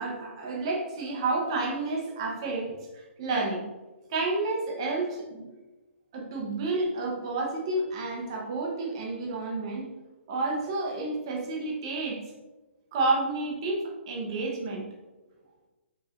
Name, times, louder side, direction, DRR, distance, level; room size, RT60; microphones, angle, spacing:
voice 1, 0.0-3.6 4.1-5.5 6.1-9.9 10.3-12.2 12.9-14.9, right 3 dB, 25° right, -1 dB, 0.6 m, -30 dB
5.5 x 3.0 x 2.4 m, 1.2 s
hypercardioid pair, 175°, 7 cm